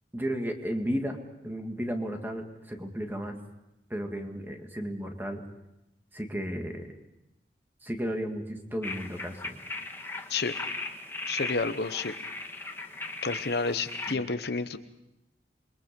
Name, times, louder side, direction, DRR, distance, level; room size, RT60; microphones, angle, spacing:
voice 1, 0.1-1.2 1.4-3.4 3.9-5.4 6.1-6.9 7.8-9.6 14.1-14.2, equal, 10° right, 3 dB, 2.0 m, -33 dB
sound 1, 8.8-14.1, left 3 dB, 15° left, 1.5 m, -37 dB
voice 2, 11.3-12.1 13.2-14.8, left 4 dB, 65° left, 10 dB, 0.9 m, -30 dB
28.0 x 22.5 x 5.3 m, 0.90 s
head